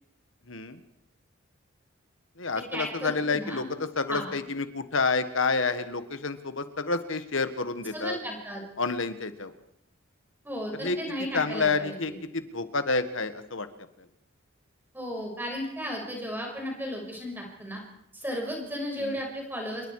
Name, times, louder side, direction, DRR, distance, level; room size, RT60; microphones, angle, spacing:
voice 1, 0.4-0.8 2.3-8.2 8.8-9.5 10.8-13.7 14.0-14.1 19.0-19.2, left 4 dB, 65° left, 10 dB, 1.7 m, -29 dB
voice 2, 2.7-3.7 4.1-4.3 7.9-8.6 10.4-12.2 14.9-17.8 18.1-19.9, equal, 10° right, 0 dB, 6.1 m, -34 dB
28.0 x 22.0 x 4.9 m, 0.74 s
head